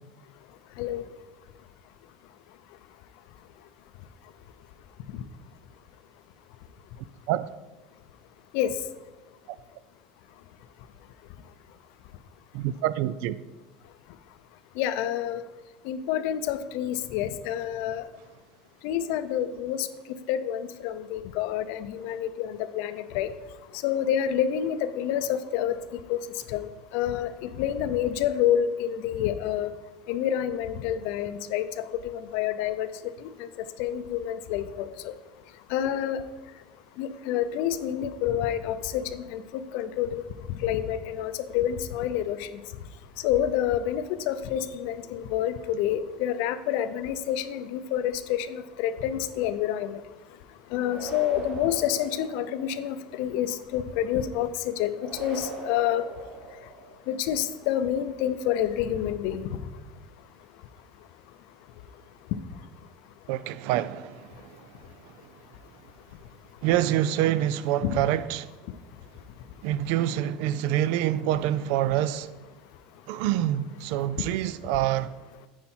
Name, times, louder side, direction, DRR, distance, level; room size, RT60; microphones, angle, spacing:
voice 1, 12.5-13.4 63.3-64.3 66.6-68.5 69.6-72.3 73.1-75.1, right 12 dB, 70° right, 0.4 m, -26 dB
voice 2, 14.8-15.4 15.8-18.1 18.8-19.9 20.3-23.3 23.8-25.7 26.1-26.2 26.5-29.7 30.1-31.6 32.0-32.9 33.2-33.5 33.8-35.1 35.7-36.2 37.0-40.2 40.6-42.5 43.2-50.0 50.7-56.0 57.1-59.6 67.8-68.0, left 10 dB, 70° left, 0.5 m, -28 dB
sound 1, 50.8-52.9 55.0-57.1, right 3 dB, 35° right, 2.4 m, -40 dB
9.4 x 4.3 x 4.4 m
supercardioid pair, 130°, 3 cm